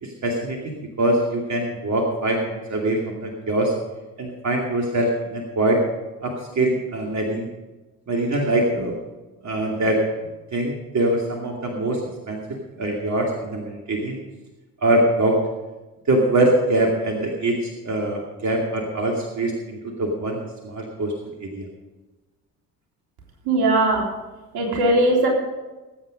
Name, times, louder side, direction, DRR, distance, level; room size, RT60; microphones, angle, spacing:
voice 1, 0.0-3.7 4.2-5.8 6.2-7.5 8.1-9.0 9.4-10.0 10.5-12.0 12.3-12.4 12.8-14.2 14.8-15.4 16.1-21.1 21.4-21.7, right 1 dB, 40° right, 0 dB, 2.6 m, -23 dB
voice 2, 23.5-24.0 24.5-25.3, right 2 dB, 60° right, 0 dB, 3.7 m, -19 dB
20.0 x 8.6 x 5.2 m, 1.2 s
figure-of-eight pair, 45°, 43 cm